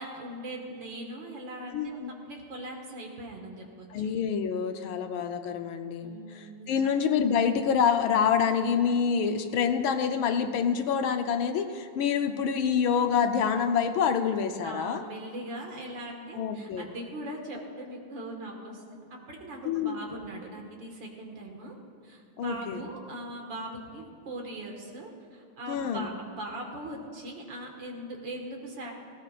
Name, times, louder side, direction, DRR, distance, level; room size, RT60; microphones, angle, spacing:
voice 1, 0.0-4.1 6.0-7.0 14.6-21.7 22.0-28.9, right 1 dB, 65° right, 1 dB, 2.4 m, -40 dB
voice 2, 1.7-2.1 3.9-15.0 16.4-16.9 19.6-20.0 22.4-22.8 25.7-26.1, left 7 dB, 80° left, 7 dB, 1.6 m, -27 dB
18.5 x 16.5 x 2.5 m, 2.3 s
omnidirectional pair, 2.2 m